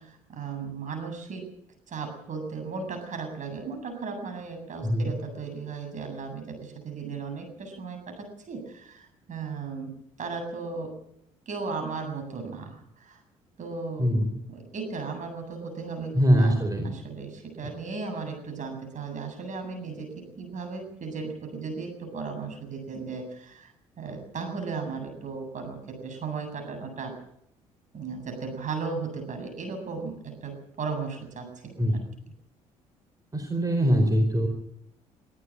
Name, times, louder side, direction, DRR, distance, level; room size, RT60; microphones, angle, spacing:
voice 1, 0.0-1.5 1.9-11.0 11.5-13.2 13.6-27.2 27.9-31.8, right 4 dB, 45° right, 5 dB, 7.8 m, -36 dB
voice 2, 4.8-5.1 14.0-14.3 16.1-16.9 31.8-32.0 33.3-34.5, equal, 20° right, 5 dB, 4.6 m, -22 dB
24.0 x 13.5 x 8.8 m, 0.74 s
figure-of-eight pair, 50°, 18 cm